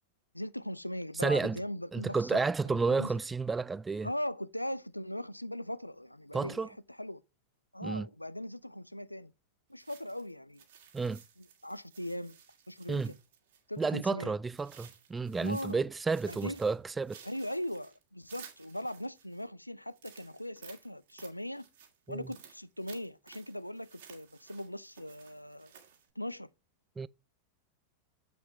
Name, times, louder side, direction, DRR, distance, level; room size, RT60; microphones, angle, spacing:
voice 1, 0.3-3.2 4.0-7.2 7.7-9.3 9.7-10.6 11.1-12.4 12.7-13.2 13.7-14.3 15.4-15.8 16.3-16.6 17.2-21.6 22.1-25.7 26.2-26.5, left 1 dB, 90° left, 0.4 m, -39 dB
voice 2, 1.2-1.6 1.9-4.1 6.3-6.7 7.8-8.1 10.9-11.2 12.9-13.1 13.8-17.2 22.1-22.3 27.0-27.1, right 4 dB, 15° right, 0.3 m, -31 dB
sound 1, 9.8-13.9 14.5-19.4 19.9-26.1, right 8 dB, 60° right, 2.3 m, -56 dB
7.8 x 7.0 x 3.5 m
figure-of-eight pair, 90°, 0 cm